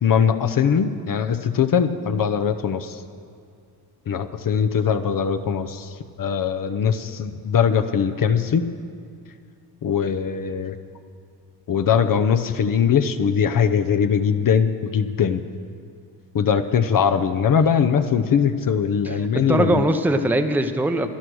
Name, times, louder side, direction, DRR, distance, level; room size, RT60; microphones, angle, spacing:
voice 1, 0.0-3.0 4.1-8.7 9.8-10.8 11.7-15.4 16.3-19.8, left 7 dB, 50° left, 8 dB, 0.8 m, -21 dB
voice 2, 19.0-21.1, right 1 dB, 5° right, 6 dB, 0.7 m, -21 dB
11.5 x 11.0 x 6.3 m, 2.4 s
cardioid pair, 65°, 43 cm